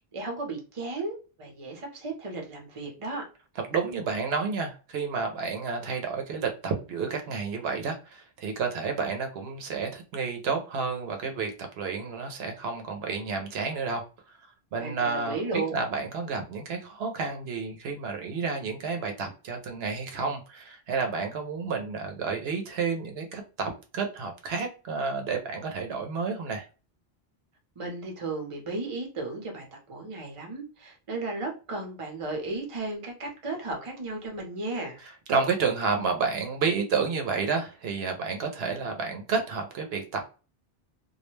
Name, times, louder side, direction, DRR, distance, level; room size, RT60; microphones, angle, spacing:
voice 1, 0.1-3.3 14.8-15.8 27.8-35.0, right 3 dB, 35° right, 2 dB, 0.7 m, -34 dB
voice 2, 3.7-14.0 14.7-26.6 35.3-40.2, right 5 dB, 80° right, 4 dB, 0.8 m, -30 dB
2.3 x 2.1 x 3.0 m, 0.34 s
omnidirectional pair, 1.0 m